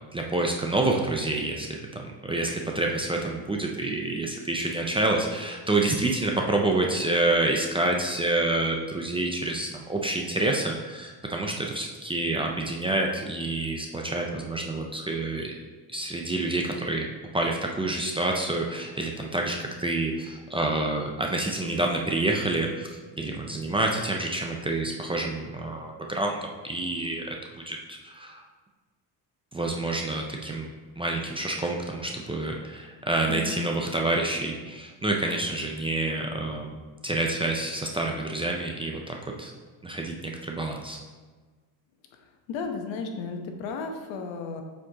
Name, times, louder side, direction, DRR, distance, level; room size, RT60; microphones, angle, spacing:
voice 1, 0.1-15.5 15.9-17.1 17.3-28.5 29.5-30.7 31.0-39.5 39.8-41.0, right 2 dB, 10° right, 0 dB, 0.4 m, -28 dB
voice 2, 33.3-33.7 42.5-44.6, left 4 dB, 80° left, 4 dB, 1.0 m, -33 dB
7.5 x 4.4 x 2.8 m, 1.4 s
cardioid pair, 125°, 45 cm